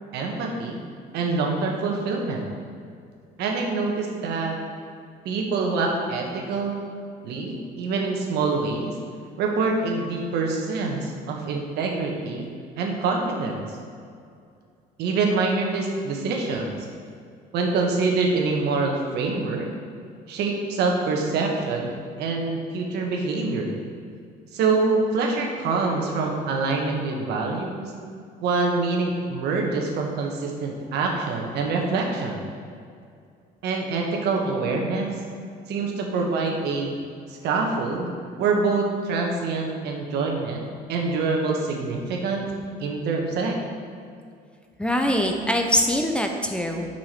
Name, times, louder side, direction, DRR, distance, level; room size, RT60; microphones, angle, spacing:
voice 1, 0.1-0.8 1.1-2.4 3.4-4.6 5.2-6.8 7.2-8.9 9.4-12.5 12.8-13.7 15.0-16.7 17.5-19.7 20.3-21.9 22.2-23.7 24.5-27.9 28.4-32.4 33.6-35.1 35.7-36.9 37.3-38.1 38.4-42.5 42.8-43.6, right 3 dB, 80° right, 1 dB, 1.5 m, -25 dB
voice 2, 44.8-46.9, equal, 5° left, 3 dB, 0.8 m, -23 dB
7.9 x 6.1 x 5.9 m, 2.3 s
cardioid pair, 110°, 17 cm